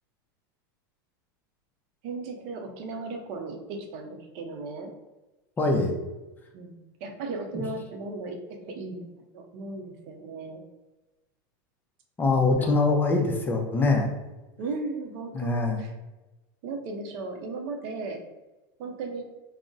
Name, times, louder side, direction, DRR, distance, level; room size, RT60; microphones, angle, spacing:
voice 1, 2.0-4.9 6.5-10.6 12.3-12.9 14.6-15.9 16.6-18.2 18.8-19.2, right 3 dB, 55° right, 3 dB, 0.6 m, -36 dB
voice 2, 5.6-5.9 12.2-14.1 15.3-15.8, left 3 dB, 15° left, 2 dB, 0.5 m, -23 dB
2.3 x 2.0 x 3.8 m, 1.1 s
supercardioid pair, 115°, 12 cm